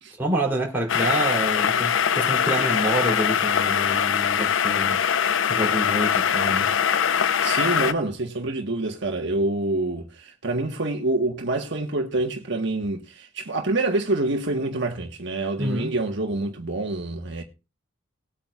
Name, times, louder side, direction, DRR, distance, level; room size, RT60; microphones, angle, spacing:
voice 1, 0.2-6.7 15.6-15.9, right 1 dB, 10° right, 3.4 m, -28 dB
sound 1, 0.9-7.9, left 8 dB, 65° left, 0.5 m, -22 dB
voice 2, 7.4-17.4, right 2 dB, 60° right, 1.4 m, -26 dB
19.5 x 8.6 x 2.4 m
head